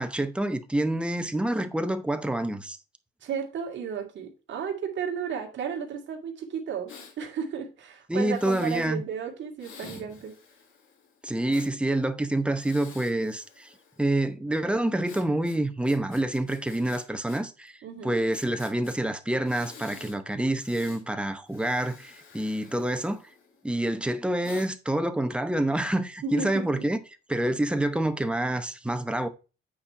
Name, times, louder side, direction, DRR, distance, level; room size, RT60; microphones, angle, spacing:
voice 1, 0.0-2.8 8.1-9.0 9.8-10.0 11.2-13.7 14.0-17.8 18.0-23.2 23.6-27.0 27.3-29.3, right 1 dB, 5° right, 0.8 m, -27 dB
voice 2, 3.2-10.3 17.8-18.2 26.2-26.9, right 7 dB, 60° right, 2.1 m, -34 dB
Breathing, 6.9-7.2 8.2-8.9 9.6-11.7 12.5-14.1 15.0-17.4 17.7-17.8 18.3-19.0 19.4-20.2 20.5-21.0 21.5-23.6 24.4-24.7, left 5 dB, 75° left, 2.2 m, -49 dB
8.6 x 4.3 x 4.6 m
cardioid pair, 150°, 21 cm